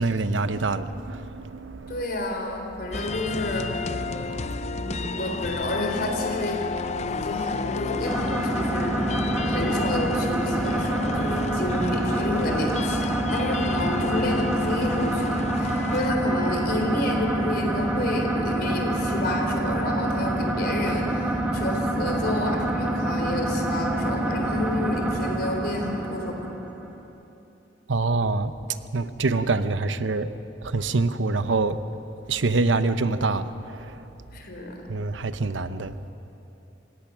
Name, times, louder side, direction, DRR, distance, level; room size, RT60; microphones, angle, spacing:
voice 1, 0.0-2.1 3.9-5.0 6.8-7.2 8.4-8.5 9.4-9.5 27.9-28.5 28.9-30.3 30.6-31.8 32.3-34.0 34.9-35.9, right 3 dB, 85° right, 12 dB, 0.8 m, -26 dB
voice 2, 1.9-3.9 4.8-6.6 7.1-9.0 9.5-26.4 34.3-34.8, left 1 dB, 55° left, 2 dB, 3.8 m, -30 dB
sound 1, 2.9-16.1, left 4 dB, 35° left, 0.6 m, -32 dB
sound 2, 8.0-26.9, right 1 dB, 10° right, 2.0 m, -27 dB
Wind instrument woodwind instrument, 15.6-23.5, left 6 dB, 20° left, 3.5 m, -47 dB
28.0 x 17.5 x 6.2 m, 3.0 s
head